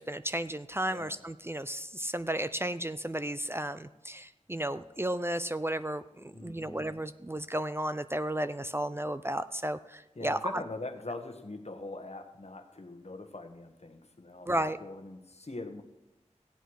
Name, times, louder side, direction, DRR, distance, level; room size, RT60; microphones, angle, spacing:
voice 1, 0.0-10.6 14.5-14.8, right 1 dB, 20° right, 12 dB, 0.5 m, -33 dB
voice 2, 6.3-6.8 10.1-14.5 14.8-15.8, left 2 dB, 60° left, 5 dB, 1.4 m, -42 dB
16.5 x 8.0 x 4.8 m, 0.99 s
wide cardioid pair, 45°, 13 cm